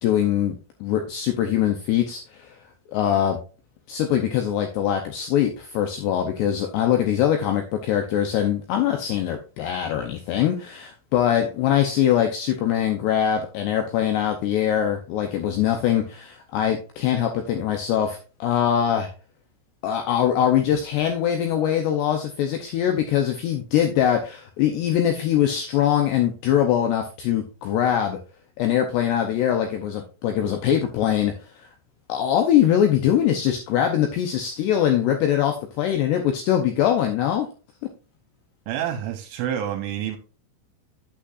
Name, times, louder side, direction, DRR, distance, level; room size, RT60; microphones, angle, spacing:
voice 1, 0.0-2.6 2.9-3.4 3.9-19.1 19.8-28.2 28.6-31.3 31.6-31.7 32.1-37.5, left 10 dB, 85° left, 5 dB, 2.4 m, -22 dB
voice 2, 38.7-40.2, right 10 dB, 80° right, 5 dB, 3.2 m, -28 dB
8.6 x 8.4 x 2.5 m, 0.34 s
omnidirectional pair, 5.8 m